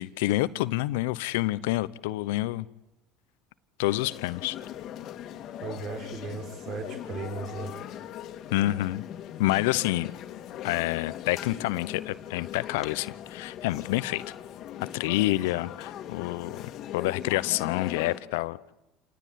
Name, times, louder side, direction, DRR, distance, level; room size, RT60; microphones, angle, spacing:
voice 1, 0.0-2.6 3.8-4.6 8.5-9.0 9.4-10.1 10.6-14.2 14.9-16.6 16.9-18.6, left 17 dB, 75° left, 17 dB, 0.8 m, -28 dB
sound 1, 3.9-18.2, left 10 dB, 55° left, 1.9 m, -40 dB
voice 2, 5.6-7.7, right 4 dB, 55° right, 4 dB, 3.9 m, -36 dB
28.5 x 17.0 x 9.4 m, 0.96 s
hypercardioid pair, 85°, 0 cm